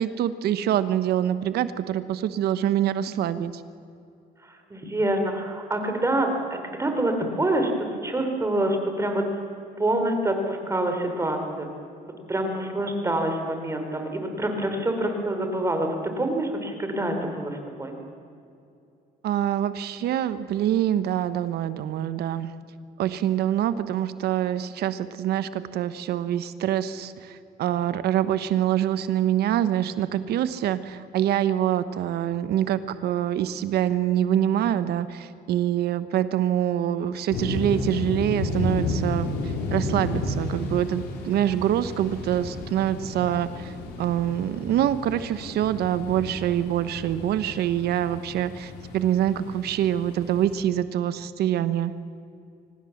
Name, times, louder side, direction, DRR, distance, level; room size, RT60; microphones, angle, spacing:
voice 1, 0.0-3.6 19.2-22.5 23.0-51.9, right 11 dB, 70° right, 13 dB, 1.1 m, -25 dB
voice 2, 4.7-7.7 8.0-9.2 9.8-11.7 12.3-17.9, right 1 dB, 15° right, 5 dB, 3.9 m, -26 dB
sound 1, 37.3-50.6, left 2 dB, 80° left, 4.0 m, -32 dB
25.0 x 19.0 x 7.3 m, 2.6 s
cardioid pair, 110°, 17 cm